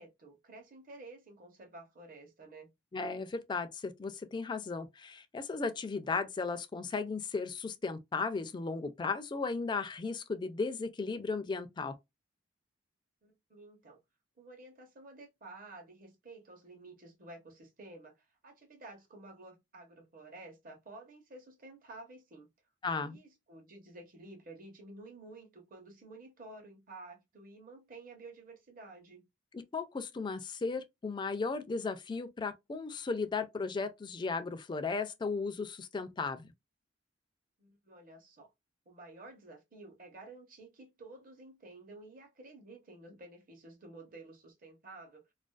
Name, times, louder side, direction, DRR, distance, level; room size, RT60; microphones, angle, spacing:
voice 1, 0.0-2.7 13.2-14.0 14.4-22.5 22.9-29.2 37.6-38.5 38.9-45.3, right 2 dB, 50° right, 0.8 m, -52 dB
voice 2, 2.9-12.0 22.8-23.2 29.5-36.5, left 4 dB, 25° left, 0.3 m, -36 dB
2.4 x 2.2 x 2.2 m
head